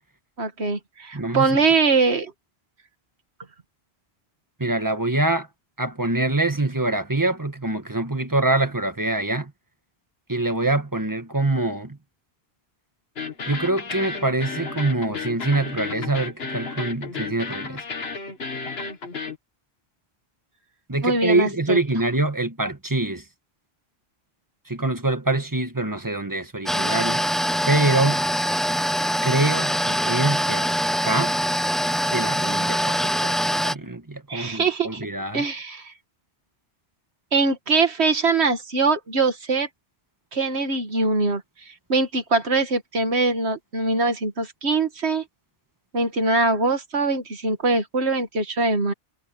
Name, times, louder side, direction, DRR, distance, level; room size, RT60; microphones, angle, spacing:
voice 1, 0.4-2.3 21.0-21.8 34.3-35.1 35.3-35.9 37.3-39.7 40.3-45.2 45.9-48.9, right 3 dB, 85° right, 2.1 m, -22 dB
voice 2, 1.1-1.5 4.6-5.5 5.8-9.5 10.3-12.0 13.5-17.8 20.9-23.2 24.7-27.2 27.7-28.2 29.2-30.7 31.0-31.3 32.0-35.4, right 2 dB, 20° right, 1.5 m, -24 dB
sound 1, 13.2-19.4, left 4 dB, 75° left, 1.7 m, -32 dB
sound 2, 26.7-33.7, equal, ahead, 0.5 m, -23 dB
omnidirectional pair, 1.1 m